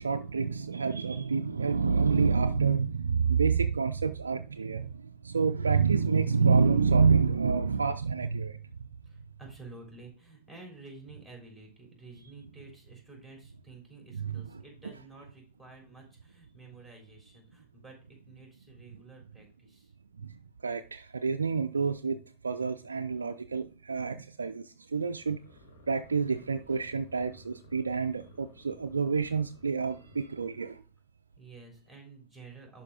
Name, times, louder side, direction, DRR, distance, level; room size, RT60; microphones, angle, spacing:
voice 1, 0.0-8.9 14.1-14.4 20.2-25.4 25.9-30.8, right 5 dB, 75° right, 0.4 m, -28 dB
voice 2, 9.0-19.9 31.4-32.8, right 3 dB, 5° left, 3.6 m, -51 dB
sound 1, 25.1-30.5, left 1 dB, 60° left, 2.7 m, -57 dB
11.0 x 4.3 x 3.6 m
figure-of-eight pair, 90°, 0 cm